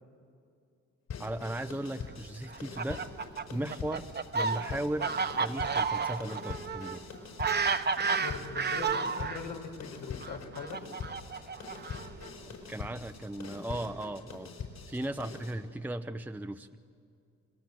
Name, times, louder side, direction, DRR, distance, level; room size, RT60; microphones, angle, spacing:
sound 1, 1.1-15.6, left 5 dB, 65° left, 5.3 m, -44 dB
voice 1, 1.2-3.0 3.5-4.1 4.3-5.1 5.4-7.0 12.5-14.5 14.9-16.8, right 1 dB, 5° right, 7 dB, 0.8 m, -37 dB
Fowl, 2.5-9.4 10.2-12.3, right 5 dB, 35° right, 1.2 m, -32 dB
voice 2, 3.5-3.8 8.2-10.8, left 5 dB, 85° left, 2 dB, 4.5 m, -41 dB
29.5 x 21.5 x 7.9 m, 2.4 s
cardioid pair, 90°, 30 cm